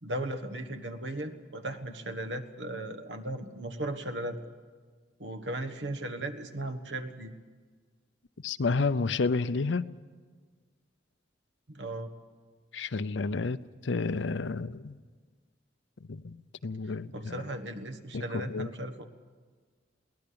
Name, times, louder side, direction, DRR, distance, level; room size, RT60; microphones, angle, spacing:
voice 1, 0.0-4.4 5.2-7.3 11.7-12.1 16.8-19.0, right 1 dB, 85° right, 7 dB, 1.5 m, -37 dB
voice 2, 8.4-9.9 12.7-13.6 13.8-15.0 16.1-16.4 16.6-17.4 18.1-18.7, left 4 dB, 85° left, 15 dB, 0.6 m, -30 dB
22.5 x 18.0 x 8.6 m, 1.5 s
head